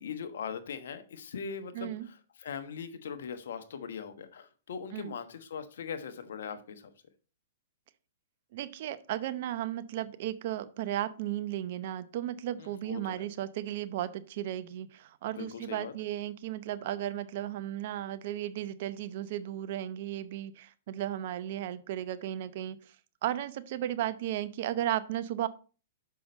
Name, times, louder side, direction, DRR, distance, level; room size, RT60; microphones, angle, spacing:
voice 1, 0.0-6.9 12.6-13.2 15.3-15.9, left 6 dB, 70° left, 1.2 m, -40 dB
voice 2, 1.7-2.1 4.9-5.1 8.5-22.9 23.2-25.5, right 12 dB, 55° right, 0.7 m, -35 dB
6.3 x 5.8 x 5.2 m
hypercardioid pair, 120°, 0 cm